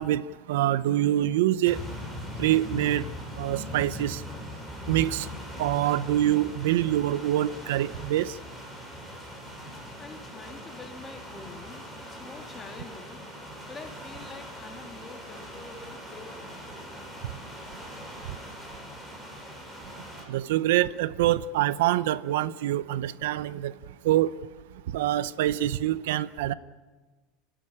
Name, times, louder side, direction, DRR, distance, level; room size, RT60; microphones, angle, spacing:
voice 1, 0.0-1.8 2.4-3.0 3.4-4.2 4.9-5.3 5.6-8.4 20.3-23.7 24.0-24.3 24.9-26.5, right 13 dB, 80° right, 0.7 m, -25 dB
sound 1, 1.6-20.2, equal, 10° right, 6.0 m, -41 dB
voice 2, 10.0-13.2 13.7-16.5, left 3 dB, 20° left, 2.7 m, -45 dB
29.5 x 12.5 x 10.0 m
supercardioid pair, 140°, 0 cm